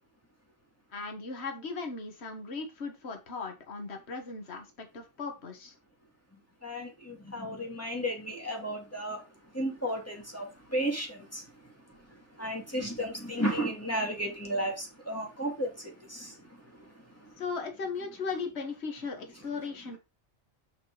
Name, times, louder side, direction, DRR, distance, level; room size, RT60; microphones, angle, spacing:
voice 1, 0.9-5.8 17.4-20.0, left 4 dB, 55° left, 1.8 m, -37 dB
voice 2, 6.3-17.4 19.5-19.7, equal, 10° left, 2.5 m, -35 dB
6.0 x 6.0 x 4.9 m
omnidirectional pair, 1.3 m